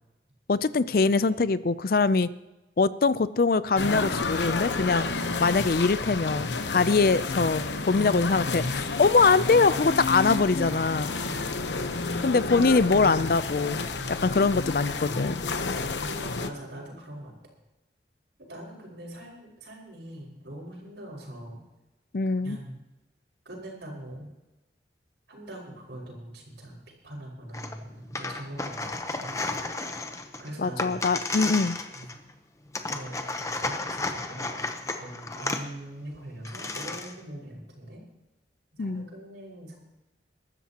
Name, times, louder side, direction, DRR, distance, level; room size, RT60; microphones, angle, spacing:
voice 1, 0.5-2.3 2.8-5.1 5.4-11.1 12.2-13.9 14.2-15.4 22.1-22.6 30.6-31.8 38.8-39.1, left 4 dB, 55° left, 16 dB, 0.5 m, -23 dB
sound 1, 3.8-16.5, left 3 dB, 85° left, 1.0 m, -30 dB
voice 2, 16.0-17.3 18.4-21.6 22.4-22.8 23.5-24.3 25.3-29.3 30.4-31.0 31.9-32.2 32.9-33.2 33.6-38.0 38.8-39.8, right 1 dB, 80° right, -1 dB, 5.4 m, -42 dB
sound 2, 27.5-27.8 28.1-32.3 32.7-35.6 36.2-36.3 36.4-37.2, left 3 dB, 15° left, 0.9 m, -33 dB
23.0 x 13.0 x 2.9 m, 1.0 s
head